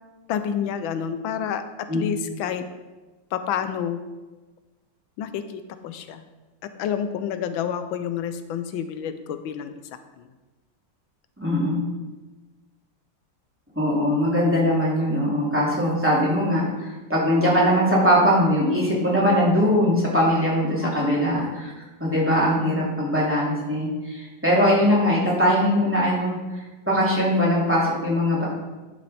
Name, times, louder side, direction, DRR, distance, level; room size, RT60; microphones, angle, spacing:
voice 1, 0.3-2.6 3.3-4.0 5.2-6.2 6.8-9.7 10.2-10.3 20.6-21.0, left 8 dB, 90° left, 10 dB, 1.4 m, -29 dB
voice 2, 11.4-11.9 13.7-21.7 22.0-26.4 26.9-28.4, equal, 5° right, -6 dB, 2.7 m, -21 dB
11.5 x 6.5 x 4.2 m, 1.2 s
omnidirectional pair, 2.1 m